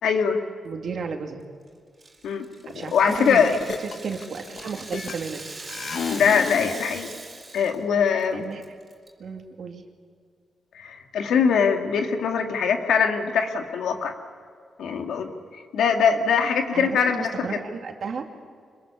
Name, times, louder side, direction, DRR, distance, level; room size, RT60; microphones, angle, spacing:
voice 1, 0.0-0.4 2.2-2.5 2.8-3.5 6.1-7.1 7.5-8.4 10.7-14.1 14.8-15.3 15.7-17.6, left 6 dB, 85° left, 5 dB, 2.2 m, -22 dB
voice 2, 0.6-1.5 2.7-5.4 8.3-8.6 9.2-9.8 16.4-18.3, right 5 dB, 60° right, 4 dB, 2.5 m, -33 dB
Rattle (instrument), 2.0-7.8 8.1-8.2 8.6-9.1, right 3 dB, 25° right, 4.4 m, -41 dB
sound 1, 3.1-3.3 3.6-5.4 5.7-6.8, left 6 dB, 60° left, 1.1 m, -32 dB
25.5 x 22.0 x 7.0 m, 2.2 s
cardioid pair, 110°, 0 cm